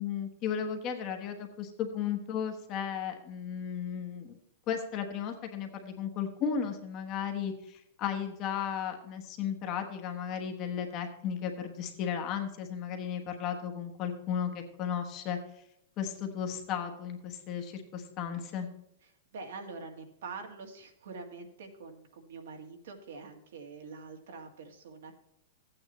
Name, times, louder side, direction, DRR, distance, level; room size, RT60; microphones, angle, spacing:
voice 1, 0.0-4.3 4.7-15.6 16.0-18.7, left 8 dB, 25° left, 4 dB, 1.1 m, -35 dB
voice 2, 19.3-25.1, right 4 dB, 70° right, 4 dB, 2.0 m, -45 dB
14.0 x 8.8 x 3.0 m, 0.79 s
supercardioid pair, 175°, 0 cm